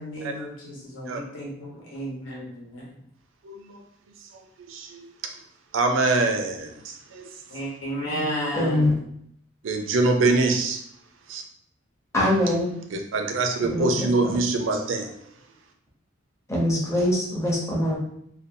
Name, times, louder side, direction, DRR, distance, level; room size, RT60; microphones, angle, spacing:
voice 1, 0.0-3.0 7.5-9.0, equal, 75° left, -4 dB, 1.0 m, -33 dB
voice 2, 3.4-3.8 4.3-5.3 5.7-7.3 9.6-10.8 11.3-11.4 12.9-15.1, right 3 dB, 70° right, 5 dB, 0.4 m, -25 dB
voice 3, 8.5-8.9 12.1-12.7 13.7-14.4 16.5-18.0, left 1 dB, 15° left, -3 dB, 0.6 m, -23 dB
2.5 x 2.2 x 2.6 m, 0.69 s
head